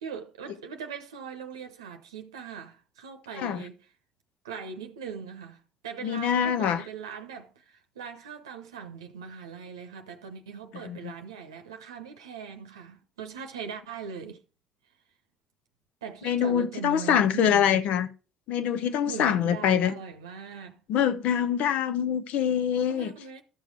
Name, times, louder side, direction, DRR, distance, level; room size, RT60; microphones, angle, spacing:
voice 1, 0.0-3.8 4.4-14.4 16.0-17.9 19.1-20.8 22.9-23.4, right 6 dB, 85° right, 0.8 m, -40 dB
voice 2, 6.0-6.8 10.8-11.1 16.2-18.1 18.5-19.9 20.9-23.1, left 9 dB, 65° left, 0.8 m, -25 dB
12.5 x 6.6 x 4.7 m
hypercardioid pair, 55°, 2 cm